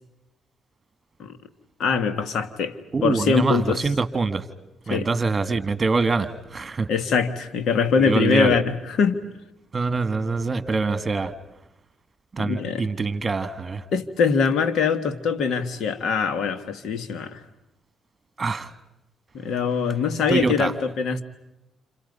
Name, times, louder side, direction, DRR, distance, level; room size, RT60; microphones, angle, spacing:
voice 1, 1.8-2.7 3.0-3.8 4.9-5.1 6.9-9.2 12.4-12.9 13.9-17.4 19.3-21.2, left 5 dB, 70° left, 10 dB, 1.7 m, -23 dB
voice 2, 2.9-4.4 4.9-6.9 8.0-8.6 9.7-11.3 12.3-13.8 18.4-18.7 20.3-20.7, right 4 dB, 35° right, 12 dB, 1.7 m, -24 dB
29.5 x 27.0 x 5.4 m, 0.92 s
supercardioid pair, 70°, 0 cm